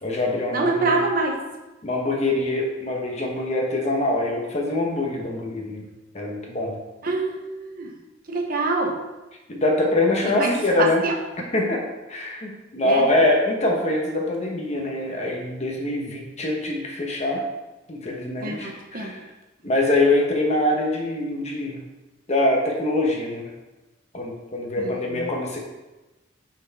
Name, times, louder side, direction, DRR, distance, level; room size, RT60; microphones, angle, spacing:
voice 1, 0.0-1.0 1.8-5.8 6.1-6.8 9.5-11.0 11.5-11.8 12.1-17.4 17.9-19.2 19.6-21.8 22.3-23.5 24.1-25.6, left 2 dB, 35° left, 0 dB, 1.0 m, -24 dB
voice 2, 0.5-1.4 7.0-7.9 8.3-9.0 10.4-10.5 10.8-11.2 12.8-13.0 18.4-19.1 24.8-25.2, right 3 dB, 50° right, 1 dB, 0.9 m, -25 dB
5.7 x 4.5 x 4.1 m, 1.1 s
head